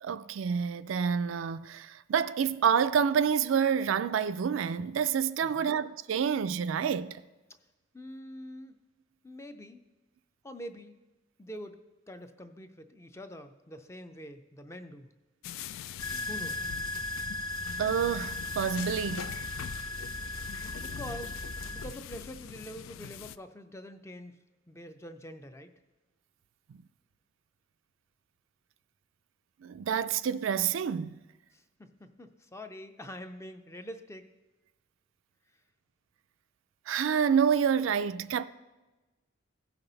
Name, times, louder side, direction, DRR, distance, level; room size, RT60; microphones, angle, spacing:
voice 1, 0.0-7.2 17.8-19.3 29.6-31.2 36.9-38.5, right 7 dB, 80° right, 0.4 m, -28 dB
voice 2, 5.4-5.8 7.9-8.8 9.2-9.8 10.4-11.0 11.4-11.8 12.1-15.1 16.3-16.7 20.8-21.4 21.7-24.3 24.7-25.7 31.5-34.2, equal, 15° left, 0.5 m, -45 dB
sound 1, 15.4-23.4, left 9 dB, 85° left, 0.3 m, -43 dB
sound 2, 16.0-21.8, left 1 dB, 30° left, 1.6 m, -37 dB
15.5 x 5.8 x 4.0 m
head